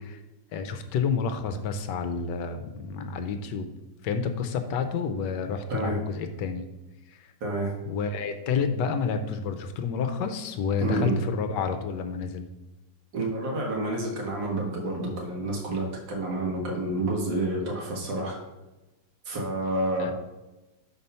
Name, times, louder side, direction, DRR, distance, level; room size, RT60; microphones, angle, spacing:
voice 1, 0.5-3.7 4.0-6.7 7.1-7.3 7.8-12.5 20.0-20.1, left 5 dB, 75° left, 8 dB, 1.3 m, -29 dB
voice 2, 7.4-7.7 10.8-11.2 13.1-18.4 19.3-20.1, right 1 dB, 80° right, -1 dB, 2.2 m, -29 dB
5.5 x 4.6 x 5.4 m, 1.0 s
omnidirectional pair, 2.0 m